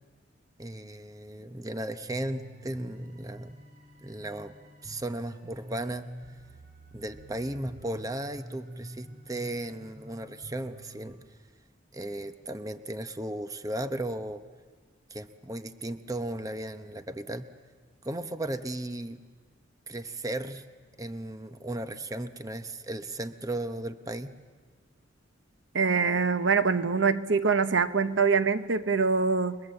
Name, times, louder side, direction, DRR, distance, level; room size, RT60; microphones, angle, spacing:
voice 1, 0.6-3.5 4.0-4.5 4.8-6.1 6.9-11.2 11.9-14.4 15.1-17.5 18.0-19.2 19.9-20.6 21.0-24.3, right 1 dB, 20° right, 9 dB, 0.8 m, -35 dB
sound 1, 2.1-11.1, right 1 dB, 45° right, 5.1 m, -47 dB
voice 2, 25.7-29.6, right 5 dB, 65° right, 12 dB, 0.8 m, -24 dB
29.0 x 21.5 x 7.7 m, 1.5 s
head